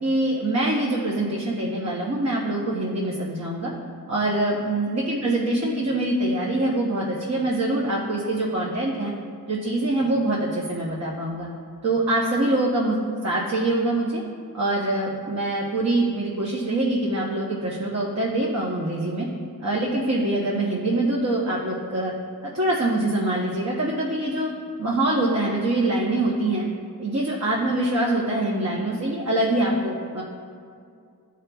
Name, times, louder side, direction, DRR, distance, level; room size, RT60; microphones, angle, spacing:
voice 1, 0.0-3.7 4.1-9.1 9.5-11.5 11.8-13.0 13.2-14.2 14.5-19.3 19.6-22.1 22.4-24.5 24.8-26.6 27.0-30.2, right 1 dB, 45° right, -4 dB, 0.9 m, -24 dB
14.0 x 5.0 x 2.3 m, 2.3 s
wide cardioid pair, 90°, 38 cm